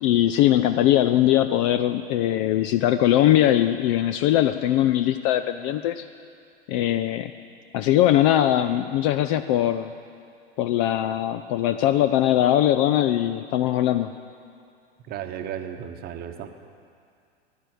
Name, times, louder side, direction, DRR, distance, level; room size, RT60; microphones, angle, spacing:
voice 1, 0.0-6.0 6.7-7.3 7.7-9.9 10.6-14.1, left 12 dB, 30° left, 11 dB, 0.4 m, -21 dB
voice 2, 15.1-16.5, right 9 dB, 30° right, 7 dB, 1.0 m, -34 dB
15.0 x 10.0 x 7.8 m, 2.4 s
figure-of-eight pair, 90°, 32 cm